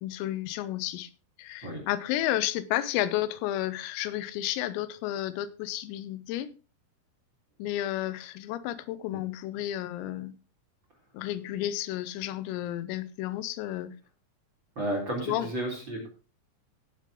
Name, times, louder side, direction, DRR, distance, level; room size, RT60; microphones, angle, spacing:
voice 1, 0.0-1.1 1.4-6.5 7.6-10.3 11.1-13.9 15.3-15.5, left 13 dB, 90° left, 15 dB, 3.5 m, -32 dB
voice 2, 14.8-16.1, right 1 dB, 25° right, 0 dB, 3.7 m, -32 dB
17.0 x 7.5 x 3.8 m, 0.33 s
omnidirectional pair, 5.9 m